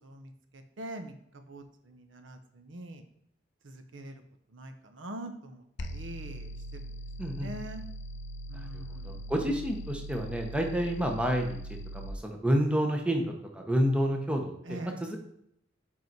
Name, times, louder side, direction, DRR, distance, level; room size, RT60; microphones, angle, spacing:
voice 1, 0.0-3.0 3.6-4.2 4.5-7.0 7.4-7.8 8.5-9.3 14.6-15.1, right 1 dB, 75° right, 7 dB, 0.8 m, -44 dB
sound 1, 5.8-12.2, right 1 dB, 65° left, 0.6 m, -41 dB
voice 2, 7.2-7.5 8.5-15.2, equal, 5° right, 2 dB, 0.9 m, -30 dB
5.4 x 5.2 x 4.6 m, 0.73 s
head